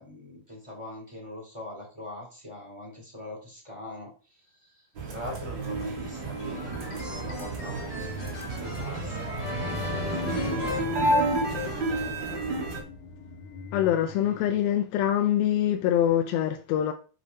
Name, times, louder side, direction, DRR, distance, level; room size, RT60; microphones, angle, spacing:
voice 1, 0.0-12.4, left 1 dB, 10° right, 2.6 m, -43 dB
sound 1, 5.0-12.8, right 2 dB, 45° right, 1.7 m, -31 dB
sound 2, 6.4-11.8, left 2 dB, 45° left, 2.9 m, -39 dB
sound 3, 8.3-14.7, left 1 dB, 60° left, 3.1 m, -39 dB
voice 2, 13.7-16.9, left 11 dB, 85° left, 2.5 m, -24 dB
7.4 x 5.0 x 4.1 m
omnidirectional pair, 4.2 m